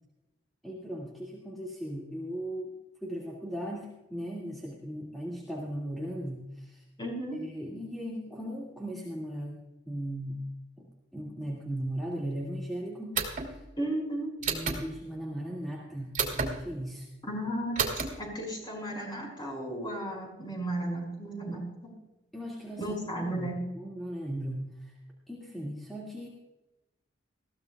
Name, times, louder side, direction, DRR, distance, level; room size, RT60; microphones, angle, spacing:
voice 1, 0.6-6.8 7.3-9.6 9.9-10.4 10.8-13.6 14.4-17.1 22.3-22.9 23.1-24.9 25.3-26.3, equal, ahead, -5 dB, 2.2 m, -37 dB
voice 2, 7.0-7.4 13.8-14.3 17.2-21.6 22.8-23.6, right 1 dB, 20° left, 0 dB, 5.4 m, -34 dB
sound 1, 13.1-13.5 14.4-14.8 16.1-16.5 17.8-18.1, right 5 dB, 40° right, 2.9 m, -29 dB
21.0 x 16.0 x 2.4 m, 1.0 s
head